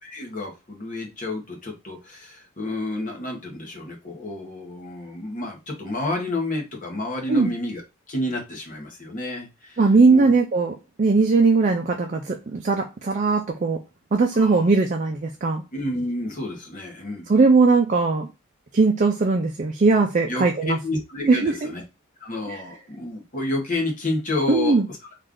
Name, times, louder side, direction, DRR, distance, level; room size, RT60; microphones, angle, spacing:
voice 1, 0.0-7.8 8.1-9.8 10.1-10.3 14.3-14.7 15.7-17.3 20.3-21.8 22.2-24.8, left 1 dB, 40° left, 1.1 m, -30 dB
voice 2, 9.8-13.8 14.1-15.6 17.3-18.3 18.7-20.8 21.3-21.7 22.5-22.6 24.5-24.9, right 3 dB, 35° right, 0.4 m, -19 dB
3.2 x 2.5 x 3.6 m
head